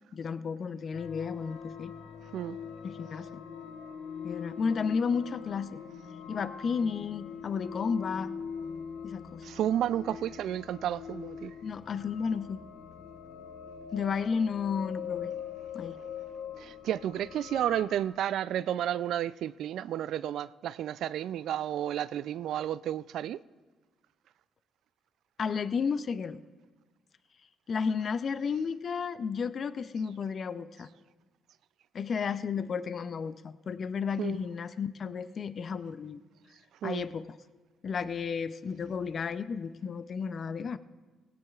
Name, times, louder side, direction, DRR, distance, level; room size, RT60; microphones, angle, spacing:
voice 1, 0.1-1.9 2.8-3.4 4.2-5.8 6.3-8.3 9.0-9.4 11.6-12.6 13.9-15.3 15.7-16.0 25.4-26.4 27.7-30.9 31.9-36.2 36.8-37.3 37.8-40.8, left 6 dB, 50° left, 0.5 m, -32 dB
sound 1, 0.9-17.9, left 7 dB, 80° left, 0.8 m, -42 dB
voice 2, 9.4-11.5 16.6-23.4 34.2-34.4 36.8-37.0, right 11 dB, 75° right, 0.3 m, -32 dB
18.0 x 16.5 x 2.4 m
cardioid pair, 90°, 0 cm